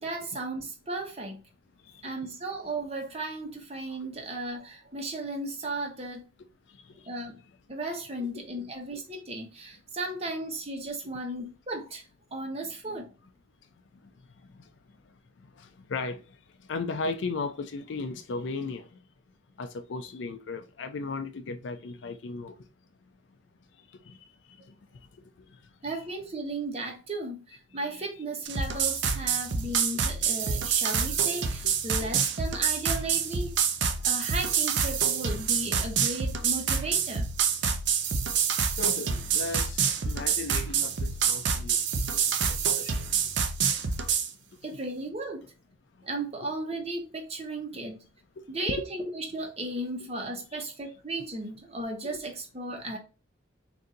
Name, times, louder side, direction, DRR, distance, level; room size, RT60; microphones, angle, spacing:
voice 1, 0.0-1.4 2.0-6.2 7.1-7.4 7.7-12.0 12.3-13.1 25.8-33.5 34.0-37.3 44.6-45.5 46.0-48.0 48.5-53.0, right 2 dB, 35° right, 1.0 m, -35 dB
voice 2, 1.8-2.1 6.7-7.1 8.2-8.3 14.0-19.0 19.6-22.6 23.7-25.9 33.9-34.2 38.7-43.1 44.5-44.6 50.5-50.6 52.0-52.2, left 3 dB, 80° left, 0.4 m, -38 dB
sound 1, 28.4-44.3, right 6 dB, 75° right, 0.6 m, -27 dB
4.0 x 2.6 x 3.7 m
head